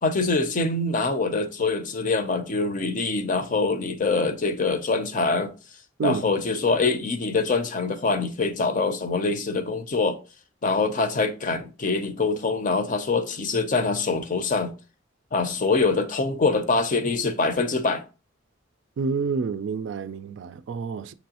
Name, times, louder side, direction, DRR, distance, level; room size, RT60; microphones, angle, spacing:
voice 1, 0.0-5.5 6.0-10.2 10.6-14.7 15.3-18.0, left 3 dB, 40° left, 0.6 m, -24 dB
voice 2, 19.0-21.1, right 5 dB, 65° right, 0.3 m, -28 dB
6.1 x 3.0 x 2.9 m
head